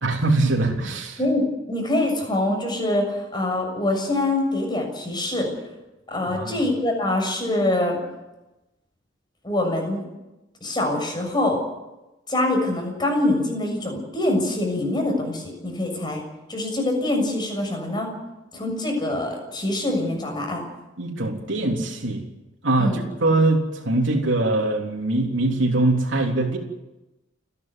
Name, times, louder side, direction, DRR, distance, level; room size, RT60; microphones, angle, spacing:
voice 1, 0.0-1.2 6.2-6.6 21.0-22.3 22.6-26.6, right 2 dB, 80° right, 0 dB, 3.5 m, -22 dB
voice 2, 1.2-5.5 6.1-8.0 9.4-10.0 10.6-11.6 12.3-16.2 16.5-18.1 18.5-20.6 22.8-23.0, left 1 dB, 25° left, 2 dB, 6.8 m, -24 dB
30.0 x 11.0 x 9.5 m, 1.0 s
head